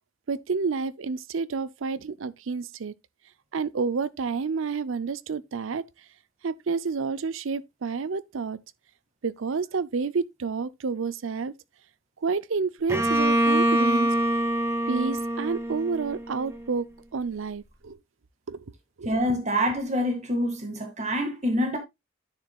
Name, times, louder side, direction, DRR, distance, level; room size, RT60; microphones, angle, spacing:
voice 1, 0.3-2.9 3.5-5.8 6.4-8.6 9.2-11.5 12.2-14.1 14.9-16.9 17.1-18.0 18.5-18.6 19.0-19.1, right 5 dB, 85° right, 0.5 m, -29 dB
Bowed string instrument, 12.9-16.6, right 1 dB, 15° right, 1.1 m, -24 dB
voice 2, 19.0-21.8, equal, 35° right, 2.1 m, -26 dB
9.9 x 6.7 x 2.3 m
head